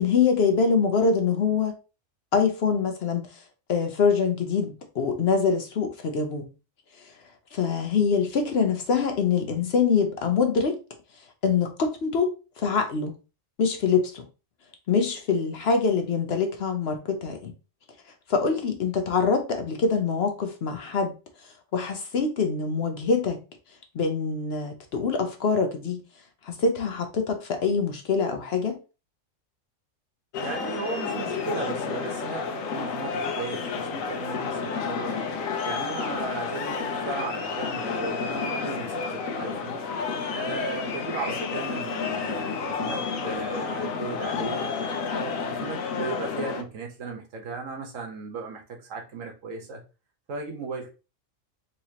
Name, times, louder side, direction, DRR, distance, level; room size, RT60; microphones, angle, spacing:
voice 1, 0.0-1.8 2.3-3.4 3.7-6.5 7.5-10.8 11.4-13.1 13.6-14.2 14.9-17.5 18.3-21.2 21.7-23.4 23.9-26.0 26.4-28.8, left 5 dB, 60° left, 0.8 m, -24 dB
sound 1, 30.3-46.6, left 5 dB, 85° left, 1.1 m, -30 dB
voice 2, 30.4-35.2 35.6-39.8 40.3-44.6 45.1-49.8 50.3-50.9, right 4 dB, 75° right, 1.4 m, -36 dB
4.1 x 2.9 x 2.8 m
omnidirectional pair, 1.4 m